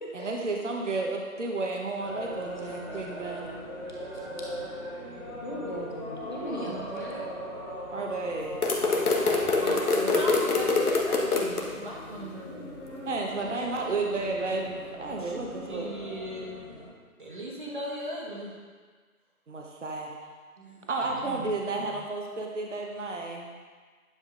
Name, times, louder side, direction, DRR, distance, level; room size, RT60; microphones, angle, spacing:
voice 1, 0.1-3.5 7.9-8.6 9.6-10.2 13.1-15.9 19.5-20.1 20.9-23.5, right 3 dB, 55° right, 1 dB, 1.0 m, -32 dB
sound 1, 2.0-16.8, equal, 15° left, 1.3 m, -40 dB
voice 2, 5.1-7.0 12.9-13.0, left 1 dB, 30° left, -3 dB, 1.1 m, -38 dB
voice 3, 6.5-7.4 9.1-12.7 15.2-15.3 15.6-16.5 17.2-18.5 20.6-20.9 21.2-21.4 21.8-21.9, right 1 dB, 35° right, -3 dB, 1.4 m, -38 dB
sound 2, 8.6-11.6, left 3 dB, 80° left, 1.4 m, -24 dB
9.9 x 7.1 x 2.5 m, 1.5 s
figure-of-eight pair, 170°, 44 cm